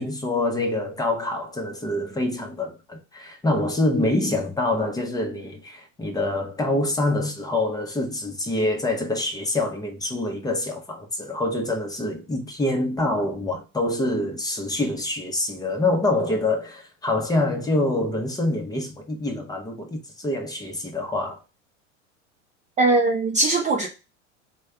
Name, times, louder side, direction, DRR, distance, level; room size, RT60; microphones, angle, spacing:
voice 1, 0.0-21.4, left 2 dB, 10° left, 0.7 m, -26 dB
voice 2, 22.8-23.9, right 2 dB, 20° right, 0.4 m, -20 dB
3.2 x 2.3 x 3.4 m
hypercardioid pair, 100°, 37 cm